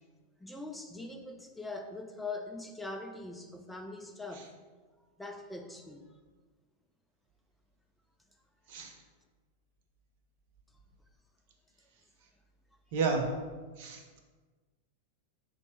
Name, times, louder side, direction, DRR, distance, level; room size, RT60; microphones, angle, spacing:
voice 1, 0.4-4.6 5.2-6.1 13.8-13.9, left 3 dB, 5° left, 4 dB, 0.3 m, -42 dB
voice 2, 12.9-13.3 13.8-14.2, right 4 dB, 50° right, 3 dB, 0.6 m, -31 dB
4.0 x 2.1 x 4.4 m, 1.4 s
figure-of-eight pair, 90°, 0 cm